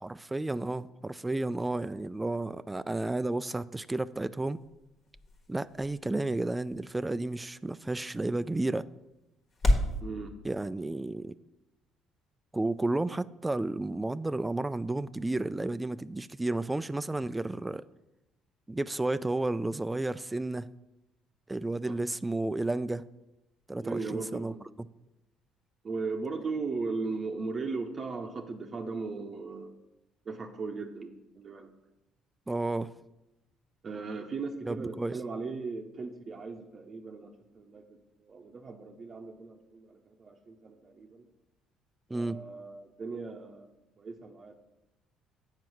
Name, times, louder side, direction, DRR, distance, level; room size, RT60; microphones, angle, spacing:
voice 1, 0.0-4.6 5.5-8.9 10.4-11.3 12.5-17.9 18.7-20.7 21.5-23.0 23.7-24.9 32.5-32.9 34.7-35.2 42.1-42.4, right 2 dB, 15° right, 0.3 m, -32 dB
sound 1, 3.7-10.0, left 1 dB, 45° left, 1.5 m, -35 dB
voice 2, 10.0-10.4 21.9-22.0 23.8-24.6 25.8-29.7 30.3-31.1 31.4-31.7 33.8-37.9 38.2-41.2 42.1-44.5, right 4 dB, 40° right, 0.7 m, -37 dB
7.7 x 4.6 x 6.1 m
hypercardioid pair, 55°, 0 cm